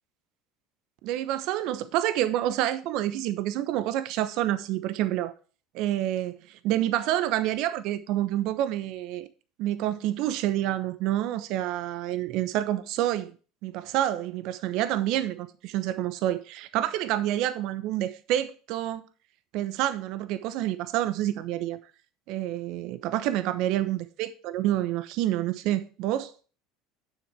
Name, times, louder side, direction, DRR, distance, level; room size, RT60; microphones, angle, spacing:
voice 1, 1.0-5.3 5.7-9.3 9.6-13.3 13.6-19.0 19.5-21.8 22.3-26.3, right 13 dB, 65° right, 0.9 m, -28 dB
9.7 x 7.4 x 3.3 m
hypercardioid pair, 80°, 0 cm